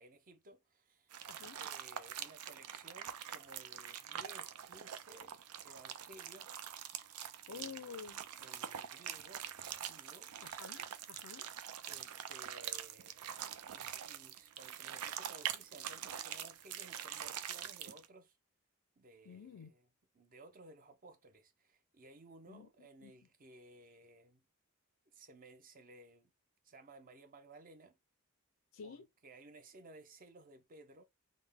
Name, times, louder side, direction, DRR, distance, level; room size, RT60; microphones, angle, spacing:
voice 1, 0.0-1.1 1.5-5.4 5.6-6.7 7.5-10.3 11.9-18.4 19.0-19.9 20.1-24.4 25.1-26.3 26.6-28.0 28.8-31.0, right 2 dB, 40° right, 0.6 m, -58 dB
sound 1, 1.1-18.1, right 10 dB, 90° right, 0.4 m, -45 dB
voice 2, 1.3-1.6 7.5-8.2 10.4-11.5 19.2-19.7 22.5-22.7 23.0-23.1 28.7-29.1, left 6 dB, 80° left, 0.4 m, -50 dB
3.7 x 2.1 x 3.5 m
head